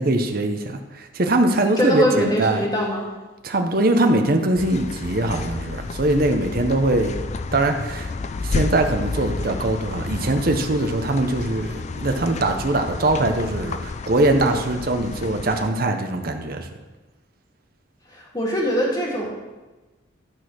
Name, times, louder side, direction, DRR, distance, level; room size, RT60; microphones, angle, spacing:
voice 1, 0.0-2.6 3.4-7.2 7.5-8.1 8.4-16.7, right 2 dB, 50° right, 5 dB, 0.8 m, -22 dB
voice 2, 1.8-3.1 18.1-19.3, equal, 20° left, -3 dB, 2.1 m, -22 dB
sound 1, 4.6-15.7, left 3 dB, 35° left, 0.4 m, -31 dB
12.0 x 4.2 x 6.3 m, 1.2 s
head